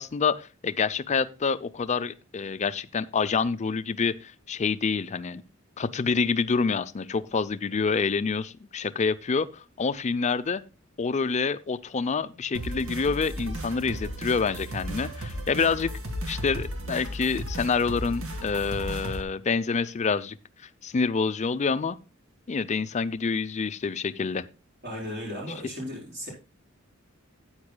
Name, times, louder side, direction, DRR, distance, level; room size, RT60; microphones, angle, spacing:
voice 1, 0.0-5.4 5.8-10.6 11.0-15.9 16.3-20.4 20.8-22.0 22.5-24.5, left 5 dB, 35° left, 14 dB, 0.5 m, -27 dB
sound 1, 12.5-19.2, equal, 80° right, 1.8 m, -35 dB
voice 2, 24.8-26.3, equal, 50° right, -4 dB, 4.6 m, -35 dB
13.5 x 8.8 x 2.2 m, 0.30 s
head